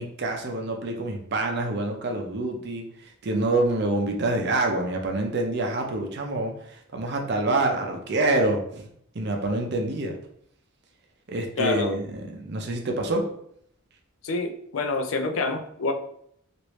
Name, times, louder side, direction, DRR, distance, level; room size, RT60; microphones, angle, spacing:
voice 1, 0.0-2.8 3.2-6.5 6.9-8.9 9.1-10.1 11.3-13.2, right 2 dB, 55° right, 2 dB, 0.6 m, -26 dB
voice 2, 11.6-11.9 14.2-15.9, left 3 dB, 75° left, 5 dB, 0.4 m, -27 dB
3.2 x 2.5 x 3.0 m, 0.68 s
head